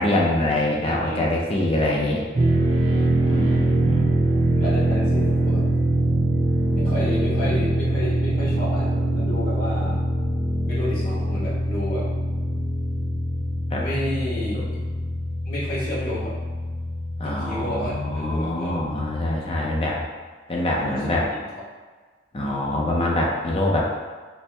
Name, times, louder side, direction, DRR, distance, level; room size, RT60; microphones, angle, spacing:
voice 1, 0.0-2.2 3.2-4.1 13.7-13.8 14.5-14.7 17.2-20.0 20.5-21.3 22.3-23.9, left 1 dB, 30° left, -3 dB, 0.5 m, -24 dB
voice 2, 0.8-1.3 1.8-2.0 4.6-5.7 6.7-10.0 10.6-12.1 13.7-14.8 15.4-16.4 17.2-18.8 20.8-21.5, left 1 dB, 50° left, -7 dB, 1.0 m, -31 dB
sound 1, 2.4-20.0, right 1 dB, 30° right, 0.4 m, -23 dB
4.3 x 2.1 x 3.3 m, 1.4 s
head